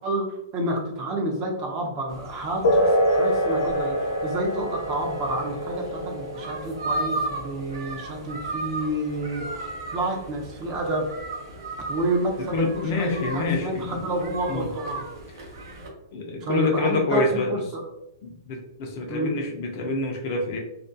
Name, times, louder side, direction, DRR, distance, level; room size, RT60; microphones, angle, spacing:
voice 1, 0.0-11.1 11.9-15.0 16.4-17.2 17.5-17.8 19.1-19.4, right 1 dB, 25° right, 0 dB, 0.4 m, -29 dB
sound 1, 2.1-15.9, right 2 dB, 65° right, 0.6 m, -36 dB
sound 2, 2.6-10.6, equal, 70° left, 0.7 m, -27 dB
voice 2, 12.4-14.0 14.5-14.7 15.4-15.5 16.1-17.6 18.2-20.6, left 2 dB, 35° left, 2 dB, 0.4 m, -27 dB
2.3 x 2.2 x 2.5 m, 0.86 s
hypercardioid pair, 170°, 2 cm